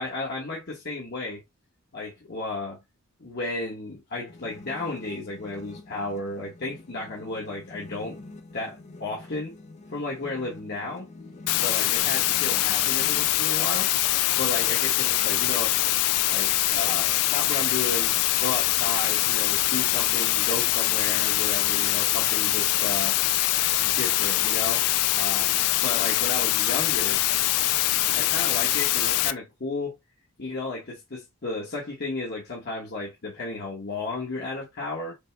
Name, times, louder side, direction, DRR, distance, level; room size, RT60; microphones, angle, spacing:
voice 1, 0.0-1.4 1.9-2.8 3.2-8.2 8.5-9.6 9.9-11.1 11.6-13.9 14.4-15.8 16.3-18.1 18.4-23.2 23.8-24.8 25.1-27.2 28.1-30.0 30.4-35.2, left 2 dB, 45° left, 1.2 m, -33 dB
sound 1, 4.3-13.3, left 2 dB, 30° left, 0.5 m, -45 dB
sound 2, 11.5-29.3, left 16 dB, 90° left, 0.3 m, -23 dB
5.2 x 2.1 x 3.3 m
head